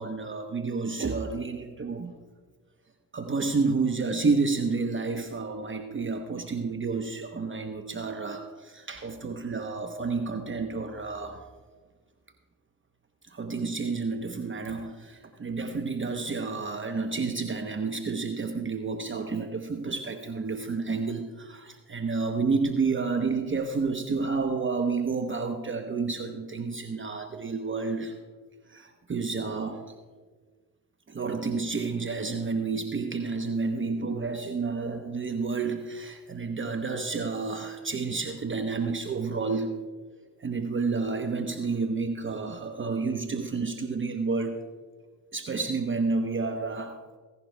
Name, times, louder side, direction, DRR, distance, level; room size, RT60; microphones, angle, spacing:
voice 1, 0.0-2.1 3.1-11.5 13.3-28.2 28.7-29.9 31.1-39.7 40.4-44.6 45.3-47.0, right 4 dB, 30° right, 6 dB, 0.9 m, -30 dB
16.0 x 11.0 x 2.3 m, 1.4 s
hypercardioid pair, 50°, 39 cm